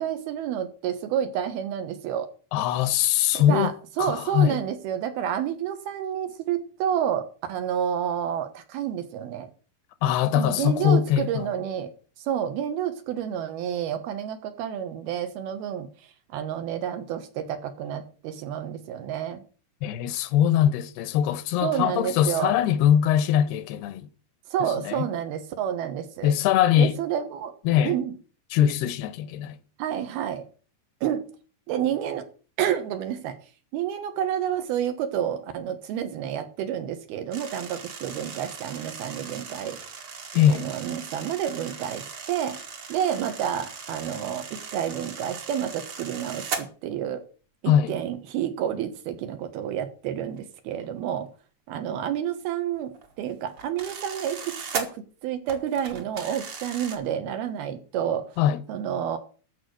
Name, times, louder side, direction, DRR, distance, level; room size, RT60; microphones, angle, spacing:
voice 1, 0.0-2.3 3.3-9.5 10.3-11.9 12.2-15.9 16.3-19.4 21.6-22.5 24.5-26.3 26.8-27.5 27.8-28.2 29.8-30.5 31.0-31.3 31.7-32.3 32.6-33.4 33.7-39.8 40.5-42.6 42.9-47.2 47.6-51.3 51.7-58.2 58.7-59.2, right 9 dB, 75° right, 3.2 m, -29 dB
voice 2, 2.5-3.7 4.0-4.6 10.0-11.5 19.8-24.1 24.6-25.1 26.2-26.9 27.7-28.0 28.5-29.6 40.3-40.6 47.7-47.9 58.4-58.6, left 10 dB, 85° left, 2.9 m, -22 dB
sound 1, 37.3-46.6 50.4-50.5 50.8-51.0 52.7-54.9 55.5-57.0, right 5 dB, 45° right, 2.1 m, -38 dB
13.5 x 4.9 x 8.0 m
omnidirectional pair, 4.5 m